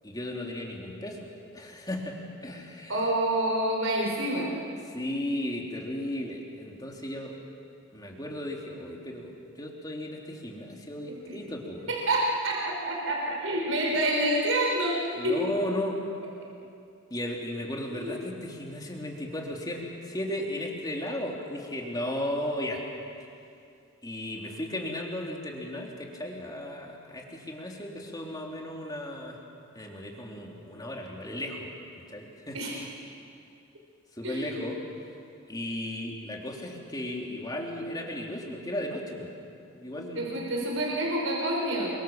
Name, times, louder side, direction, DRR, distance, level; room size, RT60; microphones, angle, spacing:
voice 1, 0.0-2.2 2.4-3.1 4.9-7.3 7.9-11.9 15.2-16.0 17.1-22.8 24.0-29.4 29.7-31.7 32.1-32.6 34.2-34.8 35.5-39.3 39.7-40.3, left 1 dB, 20° left, -1 dB, 3.5 m, -35 dB
voice 2, 2.9-4.5 11.3-11.4 11.9-15.0 15.2-15.4 17.9-18.2 32.5-32.8 34.2-34.7 40.1-41.9, right 1 dB, 75° right, -2 dB, 5.6 m, -28 dB
29.5 x 24.5 x 7.4 m, 2.5 s
head